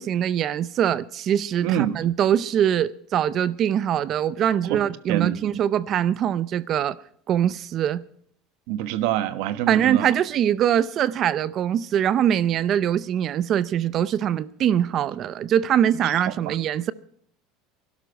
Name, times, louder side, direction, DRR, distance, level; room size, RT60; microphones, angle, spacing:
voice 1, 0.0-7.0 7.3-8.0 9.7-16.9, right 10 dB, 30° right, 0.5 m, -23 dB
voice 2, 1.6-2.0 4.7-4.8 5.1-5.4 8.7-10.1 16.0-16.1 16.5-16.6, right 12 dB, 65° right, 1.3 m, -25 dB
21.0 x 12.5 x 5.2 m
cardioid pair, 165°, 0 cm